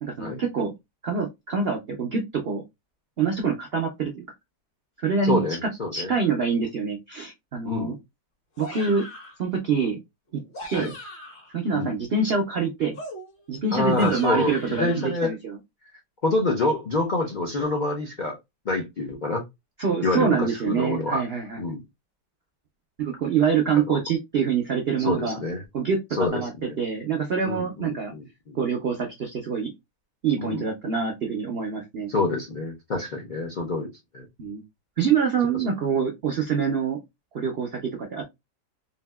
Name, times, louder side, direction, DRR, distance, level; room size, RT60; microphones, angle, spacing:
voice 1, 0.0-0.7 1.0-2.6 3.2-4.2 5.0-8.0 8.6-9.0 9.4-10.0 10.3-10.4 10.7-10.9 11.5-13.0 13.5-15.6 19.8-21.6 23.0-25.4 25.7-26.5 26.8-28.1 28.5-29.7 30.2-32.1 34.4-34.6 35.0-37.0 37.3-38.2, right 5 dB, 75° right, 2 dB, 0.5 m, -25 dB
voice 2, 5.2-6.1 7.6-8.0 10.7-10.9 11.7-11.9 13.7-15.3 16.2-18.4 18.6-19.4 20.0-21.2 21.6-21.8 23.8-24.0 25.0-25.6 26.2-26.8 27.4-28.6 30.4-30.6 32.1-33.9 34.1-34.3, left 2 dB, 75° left, 0 dB, 0.4 m, -27 dB
sound 1, 8.6-9.4 10.3-11.5 12.9-15.1, left 1 dB, 40° left, 0.9 m, -40 dB
3.7 x 2.7 x 2.2 m, 0.20 s
omnidirectional pair, 1.8 m